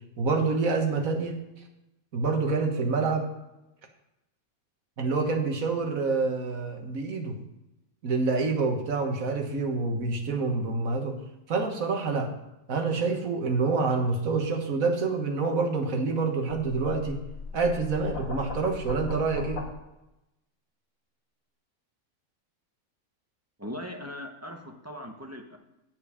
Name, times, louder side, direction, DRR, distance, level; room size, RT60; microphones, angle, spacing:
voice 1, 0.2-1.4 2.1-3.3 5.0-7.4 8.0-11.2 11.5-12.3 12.7-17.2 17.5-19.6, right 4 dB, 75° right, 4 dB, 1.8 m, -27 dB
sound 1, 16.5-19.7, left 3 dB, 70° left, 1.8 m, -38 dB
voice 2, 23.6-25.6, left 1 dB, 15° right, 2 dB, 0.9 m, -39 dB
9.1 x 8.0 x 5.0 m, 0.94 s
omnidirectional pair, 1.5 m